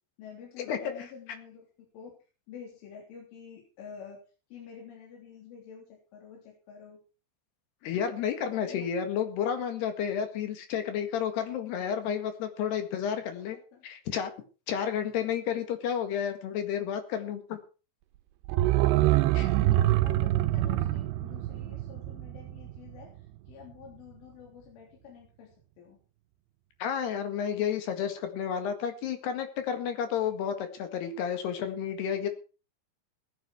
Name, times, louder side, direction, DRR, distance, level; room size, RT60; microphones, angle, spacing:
voice 1, 0.2-2.2 2.5-4.2 4.5-7.0 8.6-8.9 13.5-13.9 19.3-23.1 23.5-26.0, left 6 dB, 85° left, -2 dB, 5.9 m, -48 dB
voice 2, 7.8-13.6 13.8-14.3 14.7-17.6 19.3-19.5 26.8-32.3, left 8 dB, 65° left, 7 dB, 3.7 m, -31 dB
sound 1, 18.4-23.2 23.5-23.6, right 15 dB, 75° right, 2.9 m, -26 dB
18.0 x 10.5 x 4.6 m, 0.35 s
omnidirectional pair, 5.5 m